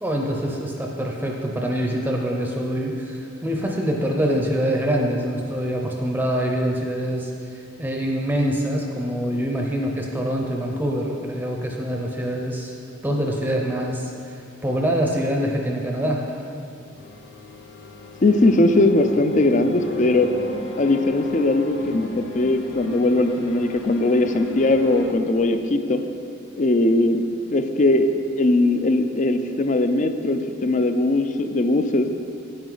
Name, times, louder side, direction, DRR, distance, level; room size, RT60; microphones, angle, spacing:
voice 1, 0.0-12.8 13.0-16.4, equal, 10° right, 0 dB, 0.7 m, -25 dB
sound 1, 17.0-25.1, left 2 dB, 65° left, 0.8 m, -36 dB
voice 2, 18.2-20.3 20.8-26.0 26.6-27.2 27.5-28.1 28.4-32.1, left 2 dB, 40° left, 8 dB, 0.5 m, -20 dB
9.3 x 8.9 x 3.9 m, 2.5 s
head